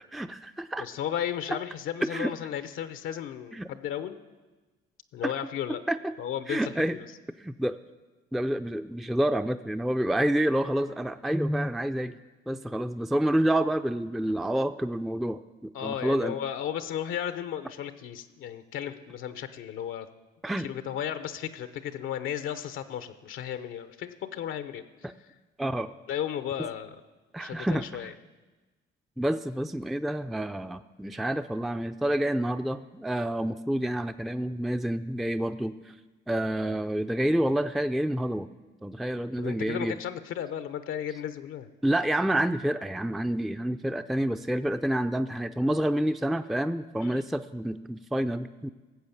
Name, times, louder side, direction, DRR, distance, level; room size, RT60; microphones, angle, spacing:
voice 1, 0.1-0.9 1.5-1.6 2.0-2.3 3.5-3.7 5.2-5.3 5.9-6.1 6.5-7.0 7.4-7.8 8.3-12.2 12.5-16.4 20.4-20.7 25.0-25.1 25.6-25.9 27.3-28.1 29.2-35.7 36.3-38.5 38.8-40.0 41.8-48.7, right 1 dB, ahead, 9 dB, 0.4 m, -28 dB
voice 2, 0.8-4.2 5.1-5.8 6.2-7.1 15.7-20.1 20.6-24.8 26.1-27.0 27.4-28.1 39.4-41.7 47.0-47.2, left 10 dB, 85° left, 11 dB, 0.8 m, -34 dB
17.5 x 7.5 x 7.2 m, 1.2 s
cardioid pair, 90°, 20 cm